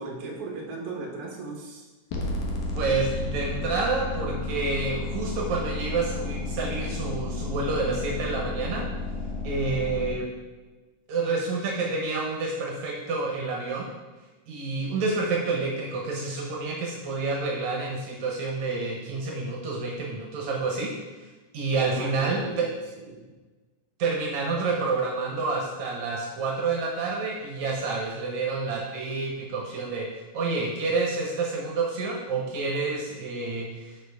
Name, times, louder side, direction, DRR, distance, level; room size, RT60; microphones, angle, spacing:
voice 1, 0.0-1.9 21.7-22.6 23.0-23.3, right 3 dB, 55° right, -1 dB, 2.2 m, -37 dB
sound 1, 2.1-10.1, left 2 dB, 85° left, 2.5 m, -32 dB
voice 2, 2.7-8.8 9.4-10.3 11.1-13.9 14.5-20.9 21.2-21.3 21.5-22.7 24.0-30.1 30.3-34.0, right 3 dB, 75° right, -1 dB, 2.3 m, -28 dB
9.9 x 5.7 x 3.5 m, 1.2 s
omnidirectional pair, 3.3 m